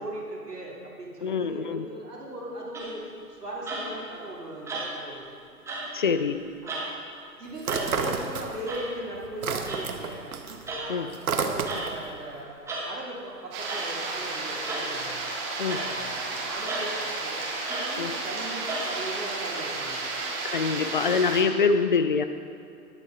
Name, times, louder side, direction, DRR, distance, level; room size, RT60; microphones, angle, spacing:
voice 1, 0.0-5.2 6.6-6.9 7.4-10.3 10.7-15.2 15.7-17.4 17.8-20.0, right 1 dB, 85° right, -4 dB, 2.7 m, -38 dB
voice 2, 1.2-1.9 5.9-6.5 10.9-11.1 15.6-15.8 18.0-18.1 20.4-22.3, left 5 dB, 35° left, 11 dB, 0.4 m, -25 dB
sound 1, 2.7-3.1 3.7-4.0 4.7-5.1 5.7-5.9 6.7-6.9 7.7-7.9 8.7-8.9 9.7-9.8 10.7-10.9 11.7-11.9 12.7-12.9 13.7-13.9 14.7-14.9 15.7-15.9 16.7-16.9 17.7-17.9 18.7-18.9, right 2 dB, 5° right, 1.2 m, -34 dB
sound 2, 7.6-8.8 9.1-12.1, right 5 dB, 65° right, 1.1 m, -30 dB
sound 3, 13.5-21.4, right 3 dB, 25° right, 1.7 m, -33 dB
19.0 x 6.5 x 3.6 m, 2.7 s
figure-of-eight pair, 125°, 46 cm